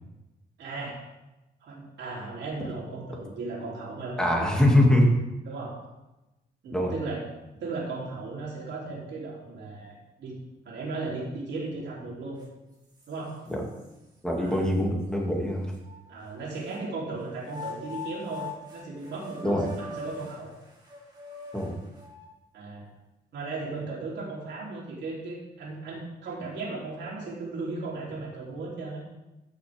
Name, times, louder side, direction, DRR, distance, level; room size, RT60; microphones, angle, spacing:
voice 1, 0.6-1.0 1.6-4.8 5.5-5.8 6.6-7.2 7.6-10.4 10.6-12.4 13.1-13.5 14.4-14.6 16.1-20.5 22.5-22.9 23.3-29.0, right 3 dB, 80° right, -5 dB, 3.5 m, -36 dB
voice 2, 4.2-5.0 6.7-6.9 13.5-13.6 14.2-15.7 19.4-19.7 21.5-21.8, left 1 dB, 5° left, -1 dB, 2.4 m, -23 dB
sound 1, 12.4-12.5 13.0-13.9 14.5-14.6 15.7-16.9 17.4-22.3, left 3 dB, 20° right, 2.3 m, -42 dB
14.0 x 6.6 x 3.6 m, 1.0 s
cardioid pair, 110°, 18 cm